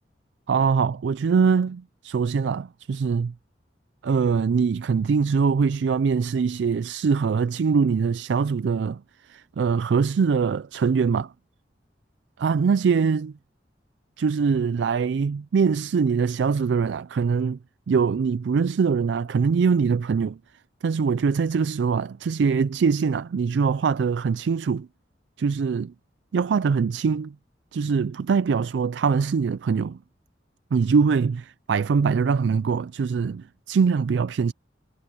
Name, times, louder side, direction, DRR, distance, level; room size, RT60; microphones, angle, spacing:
voice 1, 0.5-3.3 4.0-11.3 12.4-13.3 14.2-17.6 17.9-20.4 20.8-24.9 25.4-25.9 26.3-27.3 27.7-30.0 30.7-34.5, right 5 dB, 70° right, 0.4 m, -23 dB
head